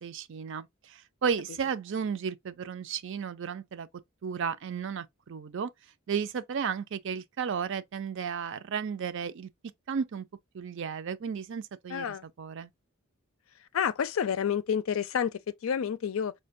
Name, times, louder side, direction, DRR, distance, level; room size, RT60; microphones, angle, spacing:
voice 1, 0.0-3.9 4.2-5.7 6.1-9.5 9.9-10.3 10.5-12.1 12.4-12.7, right 6 dB, 65° right, 0.4 m, -33 dB
voice 2, 11.9-12.3 13.6-16.3, left 7 dB, 75° left, 0.4 m, -29 dB
5.0 x 2.2 x 2.5 m
head